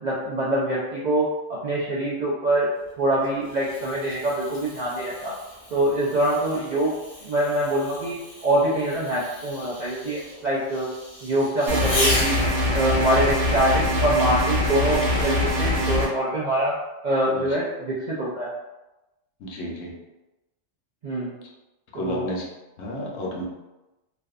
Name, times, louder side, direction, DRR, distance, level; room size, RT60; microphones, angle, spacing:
voice 1, 0.0-2.7 3.0-5.4 5.7-6.9 7.2-8.2 8.4-10.9 11.2-12.4 12.7-16.7 17.0-18.5 21.0-21.3 21.9-22.2, right 1 dB, 65° right, -7 dB, 0.4 m, -24 dB
Fireworks, 2.8-12.8 14.2-15.5, left 1 dB, 45° left, 0.5 m, -35 dB
sound 1, 11.7-16.1, left 1 dB, 80° right, 1.0 m, -23 dB
voice 2, 19.4-19.9 21.9-22.4 22.8-23.4, equal, 70° left, -2 dB, 0.8 m, -31 dB
2.5 x 2.1 x 2.3 m, 1.0 s
omnidirectional pair, 1.2 m